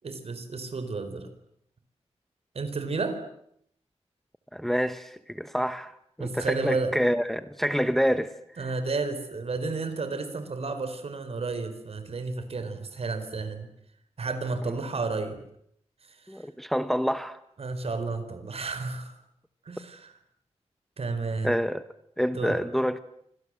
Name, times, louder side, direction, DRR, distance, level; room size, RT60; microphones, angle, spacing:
voice 1, 0.0-1.3 2.5-3.2 6.2-7.0 8.6-13.7 14.2-15.4 16.3-16.4 17.6-19.1 19.7-20.1 21.0-21.6 22.4-22.6, right 3 dB, 60° right, 4.7 m, -32 dB
voice 2, 4.5-8.7 14.7-14.8 16.3-17.4 21.4-21.8 22.2-23.0, equal, ahead, 1.0 m, -27 dB
28.5 x 25.0 x 7.8 m
wide cardioid pair, 120°, 12 cm